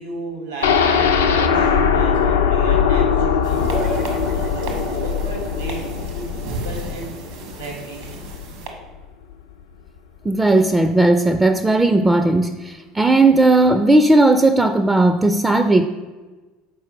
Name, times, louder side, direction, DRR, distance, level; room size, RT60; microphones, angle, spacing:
voice 1, 0.0-4.0 4.3-7.1 7.6-8.2, right 2 dB, 85° right, 0 dB, 1.9 m, -34 dB
sound 1, 0.6-8.5 8.8-8.9 9.3-9.4, left 6 dB, 80° left, 0.4 m, -20 dB
sound 2, 3.4-8.7, right 4 dB, 70° right, 1.2 m, -36 dB
sound 3, 3.5-8.4, right 3 dB, 50° right, 0.7 m, -34 dB
voice 2, 10.2-15.9, right 2 dB, 15° right, 8 dB, 0.4 m, -16 dB
6.8 x 4.5 x 4.4 m, 1.3 s
hypercardioid pair, 70°, 0 cm